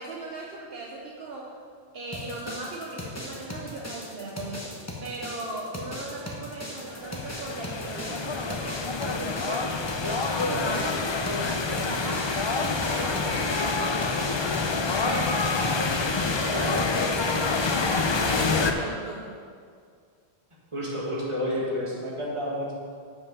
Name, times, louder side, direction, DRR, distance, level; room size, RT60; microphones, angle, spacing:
voice 1, 0.0-1.6 1.9-4.7 5.0-9.7 10.0-11.0 11.6-14.3 15.0-16.8 17.4-19.4, right 2 dB, 65° right, -2 dB, 1.0 m, -38 dB
sound 1, 2.1-18.6, left 1 dB, 15° left, 0.9 m, -38 dB
sound 2, 6.8-18.7, left 4 dB, 40° left, 0.4 m, -27 dB
voice 2, 16.5-16.8 20.7-22.7, equal, 30° right, -6 dB, 1.9 m, -30 dB
7.7 x 5.6 x 5.4 m, 2.1 s
omnidirectional pair, 1.1 m